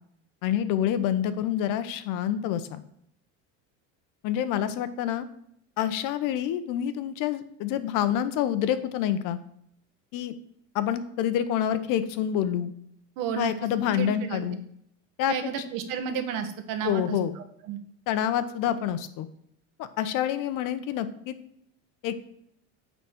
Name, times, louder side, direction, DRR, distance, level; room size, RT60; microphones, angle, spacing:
voice 1, 0.4-2.8 4.2-5.3 5.8-9.4 10.1-10.3 10.7-12.7 13.3-14.6 15.2-15.3 16.8-17.3 18.1-19.3 19.8-21.3 22.0-22.2, left 10 dB, 60° left, 12 dB, 1.0 m, -27 dB
voice 2, 13.2-13.5 13.9-14.4 15.3-17.8, right 7 dB, 65° right, 7 dB, 1.4 m, -32 dB
9.1 x 4.2 x 6.1 m, 0.71 s
cardioid pair, 130°, 35 cm